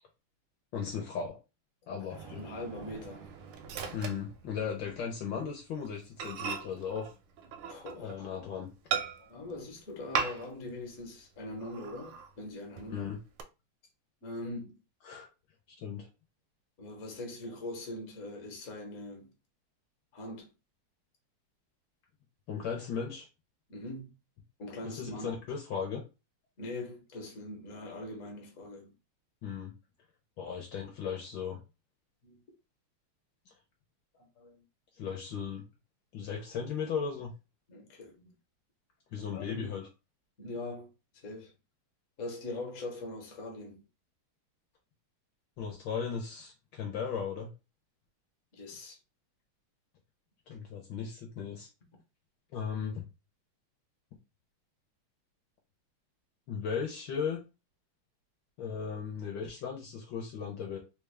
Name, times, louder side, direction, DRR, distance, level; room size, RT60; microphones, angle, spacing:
voice 1, 0.7-1.4 1.9-2.5 3.9-7.1 8.0-8.7 12.9-13.2 15.0-15.3 15.8-16.1 22.5-23.3 24.8-26.0 29.4-29.7 30.4-31.6 34.9-35.6 36.1-37.3 39.1-39.8 45.6-47.5 50.5-51.7 52.5-53.0 56.5-57.4 58.6-60.8, left 6 dB, 70° left, 1.3 m, -36 dB
voice 2, 2.0-3.3 7.7-8.1 9.2-13.1 14.2-14.8 16.8-19.3 20.1-20.5 23.7-24.1 24.6-25.4 26.6-28.9 32.2-32.4 34.4-34.6 37.7-38.3 39.3-39.8 40.4-41.5 42.2-43.8 48.5-49.0, left 2 dB, 50° left, 1.1 m, -42 dB
Microwave oven, 2.1-5.0 5.3-5.5 5.9-6.0 6.2-8.3 8.9-9.5 10.1-10.7 11.0-11.1 11.6-12.3 12.8-13.4, right 7 dB, 85° right, 1.4 m, -38 dB
3.6 x 2.2 x 3.2 m
omnidirectional pair, 2.3 m